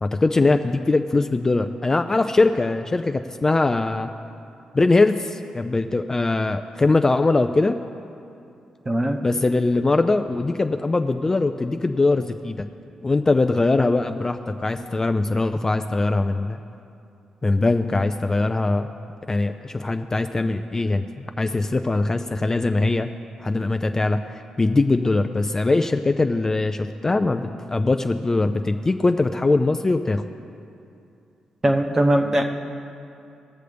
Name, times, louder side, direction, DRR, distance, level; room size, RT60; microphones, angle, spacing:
voice 1, 0.0-4.1 4.7-7.8 9.2-12.7 13.0-16.6 17.4-18.9 19.3-23.1 23.4-30.2, left 3 dB, 25° left, 7 dB, 0.3 m, -21 dB
voice 2, 8.9-9.2 31.6-32.4, right 1 dB, 25° right, 4 dB, 0.9 m, -20 dB
18.5 x 6.5 x 3.4 m, 2.6 s
cardioid pair, 90°, 2 cm